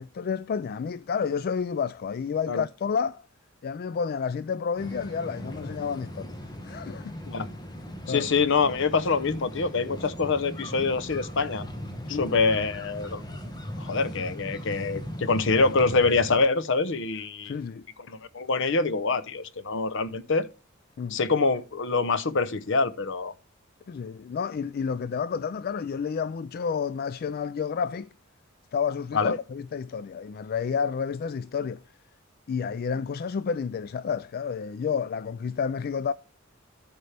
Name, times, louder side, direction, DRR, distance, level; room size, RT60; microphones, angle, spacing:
voice 1, 0.0-3.3 3.6-7.2 8.1-8.3 12.1-12.3 17.4-17.8 21.0-21.2 23.9-28.1 28.7-31.8 32.5-36.1, left 6 dB, 50° left, 0.3 m, -30 dB
sound 1, 4.8-16.4, equal, 20° left, 1.3 m, -39 dB
voice 2, 8.1-11.6 12.1-13.2 13.8-17.5 18.1-20.5 21.1-23.3 29.1-29.3, left 4 dB, 65° left, 0.8 m, -25 dB
13.5 x 5.3 x 3.4 m
head